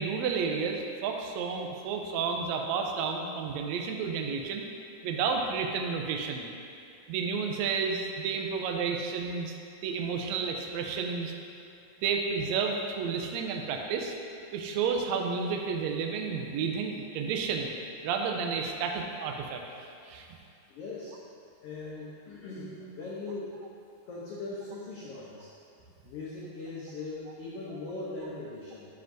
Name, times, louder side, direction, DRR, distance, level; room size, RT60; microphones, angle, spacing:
voice 1, 0.0-4.6 5.0-6.5 7.1-9.5 9.8-11.3 12.0-14.1 14.5-17.7 18.0-20.3, right 5 dB, 85° right, 2 dB, 1.6 m, -31 dB
voice 2, 20.7-21.1 21.6-23.5 24.1-25.5 26.0-28.9, left 3 dB, 80° left, -6 dB, 1.3 m, -40 dB
12.5 x 5.8 x 2.6 m, 2.5 s
omnidirectional pair, 3.9 m